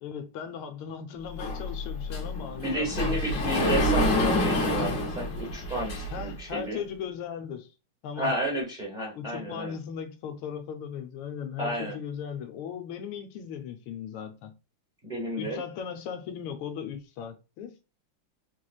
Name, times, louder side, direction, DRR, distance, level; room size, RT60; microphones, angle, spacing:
voice 1, 0.0-3.6 6.1-7.7 8.0-8.3 9.1-14.5 15.3-17.7, left 7 dB, 80° left, 1.5 m, -37 dB
Sliding door, 1.4-6.4, left 1 dB, 50° left, 1.0 m, -27 dB
voice 2, 2.6-6.8 8.2-9.7 11.6-12.0 15.0-15.6, right 1 dB, 35° right, 0.8 m, -32 dB
4.8 x 3.1 x 2.3 m
omnidirectional pair, 2.3 m